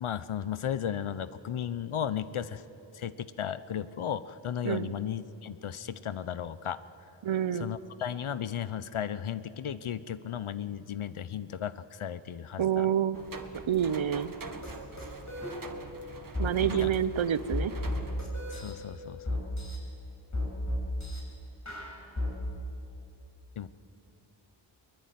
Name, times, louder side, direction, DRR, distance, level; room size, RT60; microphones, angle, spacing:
voice 1, 0.0-2.6 2.9-6.8 7.5-11.7 12.0-12.9 16.4-16.9 18.5-19.4 23.6-23.7, left 9 dB, 75° left, 15 dB, 1.0 m, -35 dB
voice 2, 7.2-7.7 12.6-13.2 13.7-14.3 16.4-17.7, right 9 dB, 65° right, 15 dB, 0.9 m, -27 dB
sound 1, 13.1-18.2, right 4 dB, 40° right, 1.9 m, -44 dB
sound 2, 14.6-14.7 15.0-15.5 16.3-16.5 17.5-18.7 19.3-19.8 20.3-21.2 21.7-22.3, left 1 dB, 35° left, 7.1 m, -32 dB
23.0 x 21.0 x 9.4 m, 2.8 s
cardioid pair, 65°, 50 cm